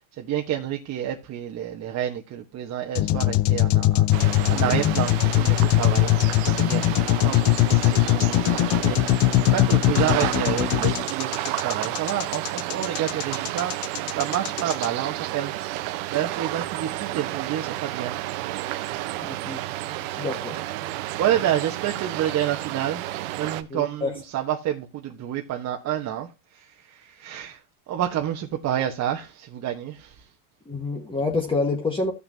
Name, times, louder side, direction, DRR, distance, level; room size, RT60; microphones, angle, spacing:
voice 1, 0.1-4.1 4.5-6.1 6.4-15.5 16.1-18.2 20.2-20.3 21.2-23.0 23.4-27.6 27.9-30.3, right 11 dB, 35° right, 1.2 m, -29 dB
sound 1, 3.0-14.9, left 16 dB, 35° left, 0.5 m, -21 dB
sound 2, 4.1-23.6, right 16 dB, 65° right, 1.1 m, -31 dB
voice 2, 19.2-19.6 20.1-20.6 23.7-24.1 30.7-32.1, left 3 dB, 10° left, 1.5 m, -27 dB
15.5 x 5.9 x 2.8 m
supercardioid pair, 135°, 45 cm